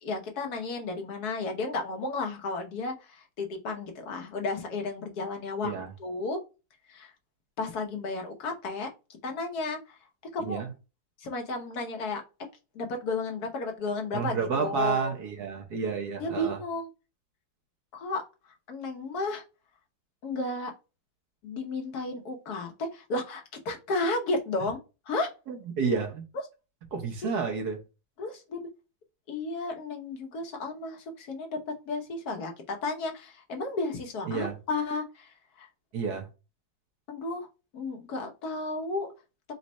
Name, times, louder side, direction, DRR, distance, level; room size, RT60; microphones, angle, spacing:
voice 1, 0.0-5.7 6.0-6.4 6.9-7.1 7.6-8.9 9.2-10.0 10.3-10.6 11.2-12.2 12.7-15.1 16.2-16.9 17.9-18.2 18.7-19.4 20.2-20.7 21.4-24.8 25.1-25.3 27.2-27.4 28.2-28.6 29.3-31.6 31.9-35.7 37.1-37.5 37.7-39.1, left 3 dB, 55° left, 1.4 m, -33 dB
voice 2, 14.1-16.6 25.5-26.2 26.9-27.8 34.3-34.6 35.9-36.3, right 5 dB, 60° right, 1.3 m, -30 dB
4.1 x 2.4 x 4.1 m
omnidirectional pair, 2.1 m